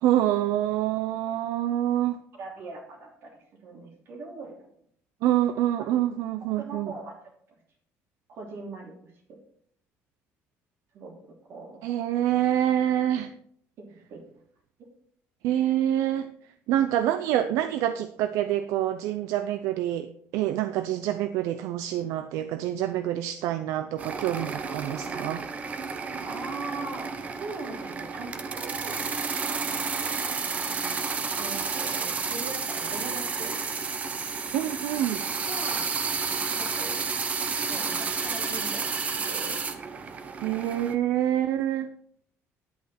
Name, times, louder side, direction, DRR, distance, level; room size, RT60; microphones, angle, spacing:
voice 1, 0.0-2.2 5.2-6.9 11.8-13.3 15.4-16.3 16.7-25.4 34.5-35.2 40.4-41.9, right 12 dB, 75° right, 10 dB, 0.5 m, -26 dB
voice 2, 2.4-4.7 5.8-6.0 6.6-7.1 8.3-8.9 9.3-9.4 10.9-11.8 13.8-14.2 26.2-29.1 31.4-33.6 35.5-35.9 36.6-37.0 37.7-39.6, right 3 dB, 55° right, 1 dB, 2.9 m, -40 dB
sound 1, 24.0-40.9, right 5 dB, 25° right, 0.8 m, -31 dB
10.5 x 8.3 x 4.3 m, 0.65 s
cardioid pair, 160°, 5 cm